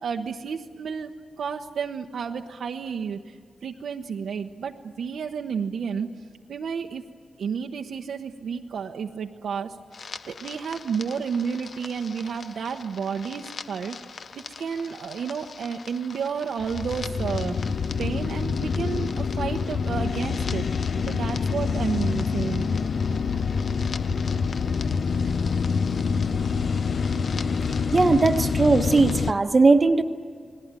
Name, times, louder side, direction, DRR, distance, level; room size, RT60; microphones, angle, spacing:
voice 1, 0.0-3.4 3.6-6.1 6.5-7.0 7.4-9.8 10.3-14.2 14.6-20.7 21.1-22.7, right 6 dB, 85° right, 2 dB, 1.0 m, -31 dB
sound 1, 9.9-29.3, left 5 dB, 50° left, 0.7 m, -27 dB
voice 2, 27.9-30.0, right 3 dB, 25° right, 6 dB, 1.1 m, -19 dB
29.0 x 20.0 x 9.0 m, 2.1 s
wide cardioid pair, 160°, 0 cm